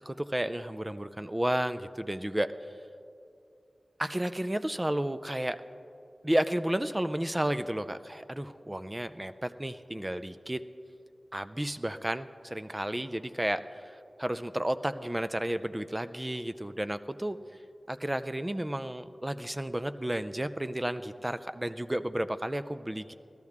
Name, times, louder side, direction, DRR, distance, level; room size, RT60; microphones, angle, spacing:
voice 1, 0.1-2.5 4.0-5.6 6.2-10.6 11.3-13.8 14.2-17.4 17.9-23.1, right 1 dB, 15° right, 11 dB, 0.4 m, -32 dB
18.0 x 13.0 x 3.6 m, 2.6 s
wide cardioid pair, 80°, 0 cm